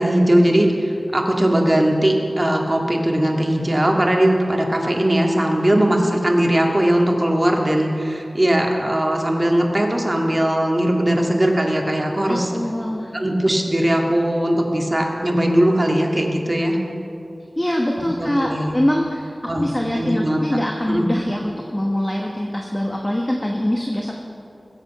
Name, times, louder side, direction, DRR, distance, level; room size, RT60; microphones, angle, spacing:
voice 1, 0.0-12.5 13.1-16.8 18.2-18.8 19.5-20.4 20.9-21.1, right 1 dB, 30° right, 0 dB, 1.9 m, -19 dB
voice 2, 12.3-13.1 17.6-24.2, left 1 dB, 20° left, 0 dB, 1.2 m, -23 dB
21.0 x 7.9 x 5.4 m, 2.7 s
wide cardioid pair, 65°, 0 cm